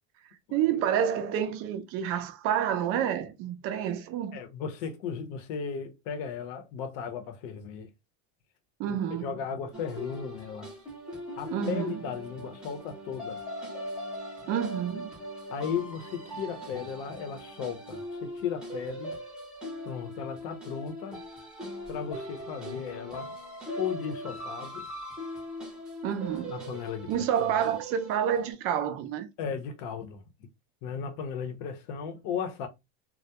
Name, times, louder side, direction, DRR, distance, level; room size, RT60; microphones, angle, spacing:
voice 1, 0.5-4.4 8.8-9.3 11.5-12.0 14.5-15.1 26.0-26.6 27.1-29.3, right 9 dB, 40° right, 0.4 m, -29 dB
voice 2, 4.3-7.9 8.9-10.7 11.4-13.4 15.5-19.1 19.8-21.2 21.9-23.3 23.7-24.8 26.5-27.6 29.4-30.2 30.8-32.7, left 7 dB, 55° left, 0.7 m, -36 dB
sound 1, 9.7-28.5, equal, ahead, 0.6 m, -40 dB
2.3 x 2.0 x 2.8 m
supercardioid pair, 150°, 36 cm